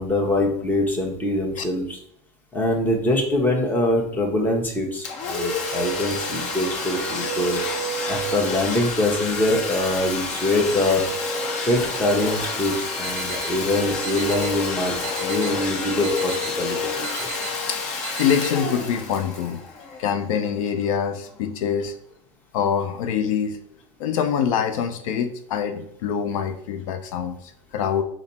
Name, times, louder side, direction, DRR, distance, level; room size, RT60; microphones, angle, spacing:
voice 1, 0.0-2.0 2.5-7.6 8.1-11.0 11.6-17.3, left 1 dB, 10° left, 0 dB, 0.9 m, -24 dB
Domestic sounds home sounds, 5.0-20.5, left 2 dB, 45° left, 0.8 m, -28 dB
sound 1, 13.0-13.5 14.0-14.5 15.0-15.5 16.0-16.5 17.0-17.5 18.0-18.5, right 9 dB, 30° right, 0.5 m, -35 dB
voice 2, 17.4-17.8 18.2-19.6 20.0-21.9 22.5-23.6 24.0-28.0, left 7 dB, 80° left, 8 dB, 0.5 m, -25 dB
4.0 x 2.0 x 4.0 m, 0.71 s
supercardioid pair, 120°, 17 cm